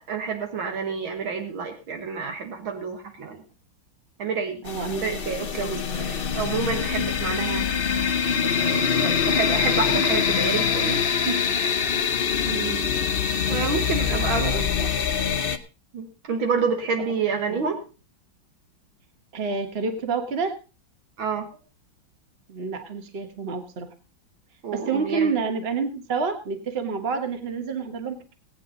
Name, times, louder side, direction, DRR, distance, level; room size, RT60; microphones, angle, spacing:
voice 1, 0.0-3.4 4.2-4.6 5.0-7.7 8.6-11.4 12.1-12.2 13.5-14.7 15.9-17.8 21.2-21.5 24.6-25.3, right 5 dB, 75° right, 4 dB, 2.3 m, -28 dB
voice 2, 4.6-5.3 5.6-6.0 12.5-12.9 13.5-13.7 14.1-14.9 17.5-17.6 19.3-20.5 22.5-23.9 24.7-28.3, right 5 dB, 35° right, 6 dB, 1.5 m, -29 dB
sound 1, 4.7-15.6, left 7 dB, 50° left, 0.7 m, -24 dB
17.5 x 9.2 x 3.9 m, 0.33 s
omnidirectional pair, 2.2 m